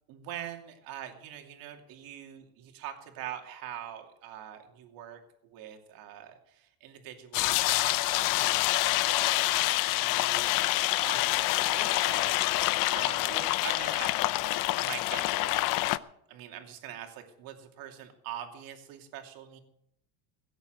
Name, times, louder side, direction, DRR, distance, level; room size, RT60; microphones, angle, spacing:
voice 1, 0.1-5.2 5.5-6.3 6.8-7.5 7.8-10.5 10.9-12.7 12.9-15.8 16.3-19.6, right 10 dB, 55° right, 4 dB, 2.7 m, -43 dB
sound 1, 7.3-16.0, left 18 dB, 50° left, 0.6 m, -27 dB
17.0 x 8.2 x 7.8 m, 0.79 s
supercardioid pair, 125°, 42 cm